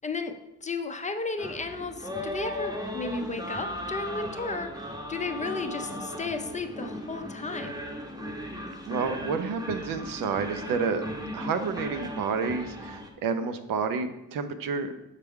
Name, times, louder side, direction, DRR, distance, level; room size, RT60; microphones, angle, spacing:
voice 1, 0.0-7.7, left 3 dB, 20° left, 6 dB, 0.5 m, -34 dB
sound 1, 1.4-13.1, equal, 10° right, 0.8 m, -37 dB
voice 2, 8.9-11.0 11.3-14.9, right 5 dB, 80° right, 8 dB, 0.7 m, -30 dB
6.6 x 4.5 x 3.6 m, 0.91 s
cardioid pair, 115°, 33 cm